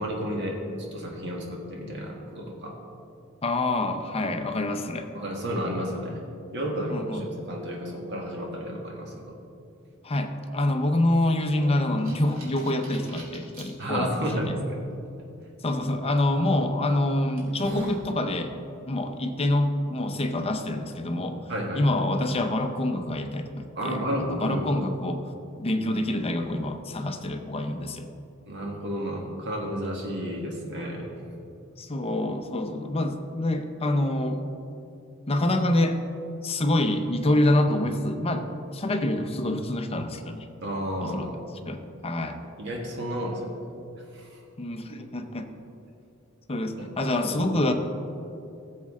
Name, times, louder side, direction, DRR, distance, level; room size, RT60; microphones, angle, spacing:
voice 1, 0.0-2.8 5.1-6.2 6.5-9.4 13.8-14.8 21.5-21.9 23.8-24.7 28.5-31.1 40.6-41.3 42.6-43.5 44.1-44.4 46.8-46.9 47.2-47.6, equal, 55° right, 0 dB, 1.6 m, -32 dB
voice 2, 3.4-5.1 6.9-7.3 10.0-14.6 15.6-18.5 18.9-21.4 21.7-25.3 25.6-28.1 31.8-34.4 35.3-36.0 36.4-38.5 38.7-40.5 41.0-41.3 41.7-42.4 44.6-45.5 46.5-47.7, left 1 dB, 30° left, 6 dB, 0.6 m, -26 dB
sound 1, 11.6-13.7 14.3-14.4 16.2-16.4 16.9-17.0 17.4-18.0, right 1 dB, 80° right, 2.6 m, -40 dB
15.5 x 7.3 x 3.7 m, 2.7 s
head